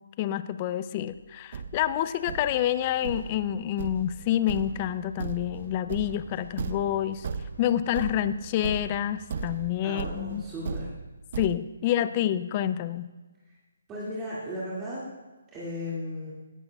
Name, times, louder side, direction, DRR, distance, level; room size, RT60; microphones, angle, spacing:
voice 1, 0.2-7.3 7.6-10.4 11.4-13.1, left 11 dB, 30° left, 13 dB, 0.4 m, -28 dB
Thump thud, 1.1-1.2 1.5-11.6, right 5 dB, 50° right, 0.5 m, -37 dB
sound 1, 2.2-10.8, right 1 dB, 75° right, 3.7 m, -50 dB
voice 2, 9.8-10.9 13.9-15.1 15.5-16.3, left 1 dB, 15° right, -8 dB, 2.2 m, -35 dB
16.5 x 11.0 x 2.3 m, 1.2 s
hypercardioid pair, 155°, 0 cm